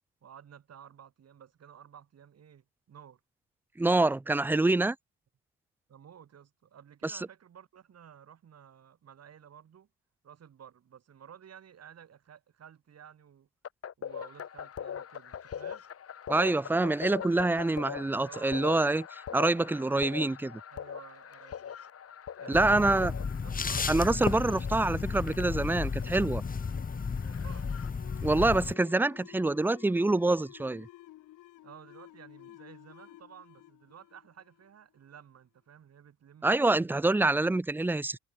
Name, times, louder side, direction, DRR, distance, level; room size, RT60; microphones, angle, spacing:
voice 1, 0.2-3.2 5.9-9.9 10.2-13.5 14.0-15.8 18.3-18.7 20.7-21.7 22.4-25.0 27.2-27.7 31.6-36.9, right 8 dB, 55° right, 4.8 m, -53 dB
voice 2, 3.8-5.0 7.0-7.2 16.3-20.6 22.5-23.1 23.9-26.4 28.2-30.9 36.4-38.2, right 2 dB, 5° right, 0.4 m, -26 dB
sound 1, 13.6-28.5, left 8 dB, 50° left, 2.1 m, -43 dB
sound 2, 22.5-28.7, left 5 dB, 30° left, 1.3 m, -33 dB
sound 3, 28.0-35.2, left 16 dB, 90° left, 2.5 m, -53 dB
cardioid pair, 90°, 30 cm